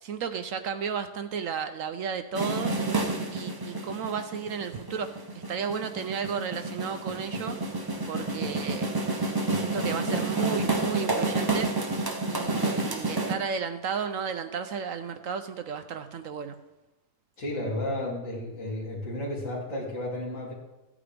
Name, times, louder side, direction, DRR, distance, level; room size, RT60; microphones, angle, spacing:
voice 1, 0.0-2.8 3.3-7.6 8.1-8.9 9.5-11.7 12.3-16.6, right 6 dB, 65° right, 8 dB, 0.9 m, -33 dB
sound 1, 2.3-13.3, right 2 dB, 30° right, 0.4 m, -29 dB
voice 2, 17.4-20.5, left 1 dB, 50° left, -7 dB, 3.0 m, -32 dB
14.5 x 8.6 x 3.4 m, 1.0 s
omnidirectional pair, 1.7 m